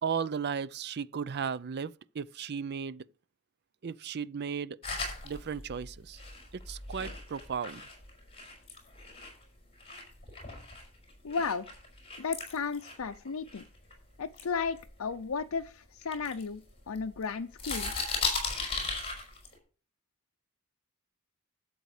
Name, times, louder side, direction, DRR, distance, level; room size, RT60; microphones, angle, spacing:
voice 1, 0.0-3.0 3.8-4.8 5.2-6.2 6.5-7.8, right 6 dB, 50° right, 0.4 m, -35 dB
sound 1, 4.8-9.4 9.8-13.9 14.3-15.6 16.0-17.2 17.5-19.5, left 3 dB, 25° left, 4.8 m, -37 dB
voice 2, 11.2-11.7 12.2-13.6 14.2-16.6 16.9-17.9, left 5 dB, 75° left, 0.6 m, -34 dB
12.5 x 7.9 x 4.9 m
head